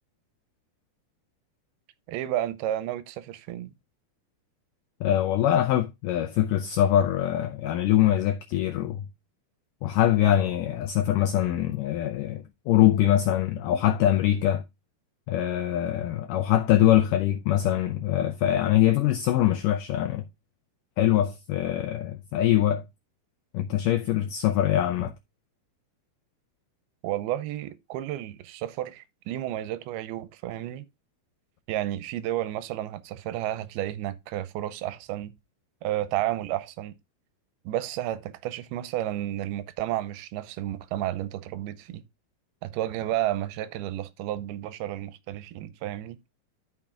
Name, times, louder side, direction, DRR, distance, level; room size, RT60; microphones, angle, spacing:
voice 1, 2.1-3.7 27.0-30.9 31.7-35.3 35.8-37.0 37.7-42.0 42.6-46.2, right 13 dB, 85° right, 2.6 m, -32 dB
voice 2, 5.0-9.0 9.8-14.6 15.3-20.2 21.0-22.8 23.5-25.1, left 12 dB, 90° left, 1.9 m, -23 dB
13.5 x 6.0 x 2.3 m
omnidirectional pair, 4.5 m